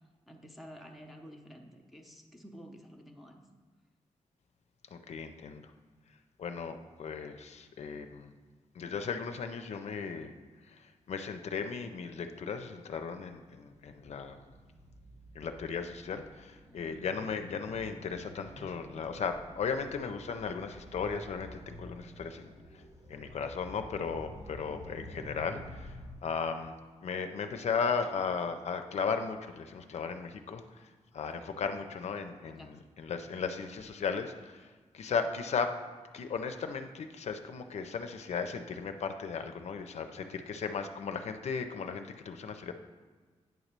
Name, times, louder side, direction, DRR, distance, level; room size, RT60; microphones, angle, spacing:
voice 1, 0.3-3.4 32.5-32.7 35.1-35.2, equal, ahead, 0 dB, 0.6 m, -51 dB
voice 2, 4.9-5.7 6.4-8.3 8.7-10.4 10.7-14.5 15.3-22.8 23.1-35.8 36.1-42.7, left 5 dB, 65° left, 7 dB, 0.5 m, -36 dB
sound 1, 13.4-26.1, equal, 65° right, 1.8 m, -50 dB
9.1 x 3.0 x 6.6 m, 1.4 s
wide cardioid pair, 150°, 12 cm